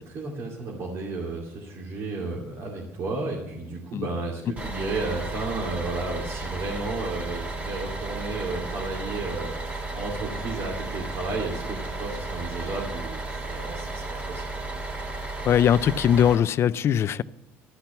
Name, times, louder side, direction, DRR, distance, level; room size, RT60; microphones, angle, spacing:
voice 1, 0.0-14.6, right 3 dB, 55° right, 2.6 m, -33 dB
Bus, 4.6-16.3, right 2 dB, 25° right, 3.7 m, -34 dB
voice 2, 15.4-17.2, left 9 dB, 45° left, 0.4 m, -21 dB
13.0 x 6.0 x 8.1 m
supercardioid pair, 95°, 6 cm